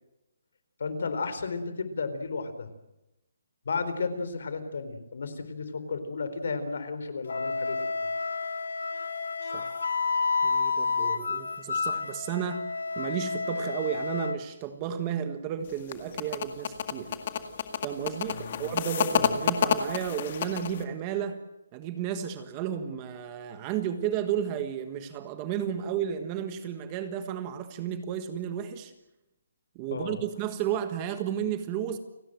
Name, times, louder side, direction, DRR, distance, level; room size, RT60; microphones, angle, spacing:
voice 1, 0.8-2.7 3.7-8.1 18.3-18.7 19.1-19.3 29.9-30.2, left 4 dB, 55° left, 11 dB, 4.1 m, -33 dB
Wind instrument woodwind instrument, 7.3-14.4, left 4 dB, 75° left, 2.5 m, -30 dB
voice 2, 9.4-9.8 10.4-12.7 12.9-17.1 17.8-21.4 21.7-28.9 29.7-32.0, right 9 dB, 15° right, 9 dB, 1.5 m, -33 dB
sound 1, 15.7-20.8, left 7 dB, 30° left, 2.0 m, -29 dB
30.0 x 18.0 x 7.8 m, 0.91 s
hypercardioid pair, 180°, 0 cm